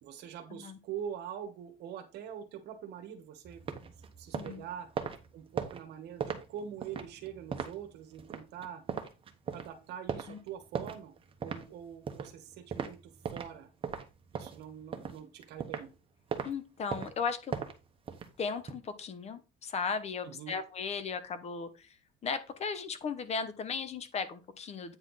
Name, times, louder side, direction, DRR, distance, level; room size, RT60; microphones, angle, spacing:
voice 1, 0.0-3.7 4.2-4.9 5.3-8.8 9.5-11.1 11.4-13.7 14.3-15.9 20.2-20.5, right 9 dB, 65° right, 7 dB, 1.2 m, -44 dB
sound 1, 3.4-13.6 13.8-15.9 16.3-16.5 16.9-18.7, right 6 dB, 30° right, 1.1 m, -39 dB
voice 2, 4.3-4.6 10.3-10.4 16.4-17.5 18.4-22.0 22.2-25.0, left 5 dB, 35° left, 12 dB, 0.9 m, -36 dB
8.9 x 4.4 x 4.0 m, 0.30 s
cardioid pair, 125°, 19 cm